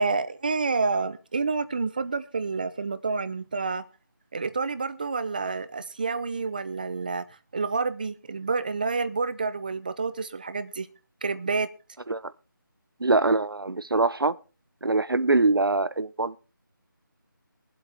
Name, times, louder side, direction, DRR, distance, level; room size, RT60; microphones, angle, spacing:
voice 1, 0.0-3.9 4.3-7.2 7.5-10.9 11.2-11.7, right 4 dB, 25° right, 0.6 m, -28 dB
voice 2, 13.0-14.4 14.8-16.4, right 3 dB, 90° right, 0.9 m, -23 dB
23.0 x 7.8 x 3.5 m
figure-of-eight pair, 170°, 12 cm